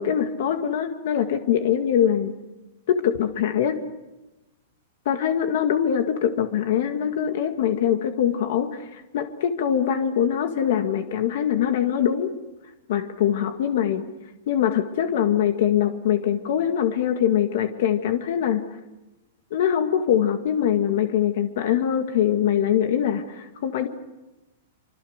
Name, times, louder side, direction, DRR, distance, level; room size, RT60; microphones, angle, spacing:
voice 1, 0.0-2.3 2.9-3.8 5.1-12.3 12.9-14.0 14.5-18.6 19.5-23.9, left 9 dB, 55° left, 7 dB, 1.9 m, -23 dB
26.0 x 25.5 x 6.6 m, 1.0 s
supercardioid pair, 165°, 0 cm